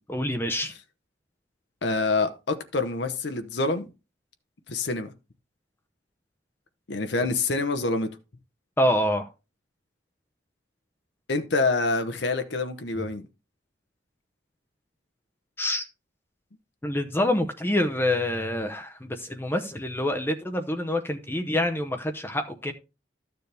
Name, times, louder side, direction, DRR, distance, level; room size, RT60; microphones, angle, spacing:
voice 1, 0.1-0.7 8.8-9.3 13.0-13.1 15.6-15.9 16.8-22.7, left 1 dB, 10° left, 0.7 m, -26 dB
voice 2, 1.8-3.9 4.7-5.1 6.9-8.1 11.3-13.3, left 3 dB, 60° left, 0.9 m, -26 dB
13.0 x 6.9 x 3.4 m
head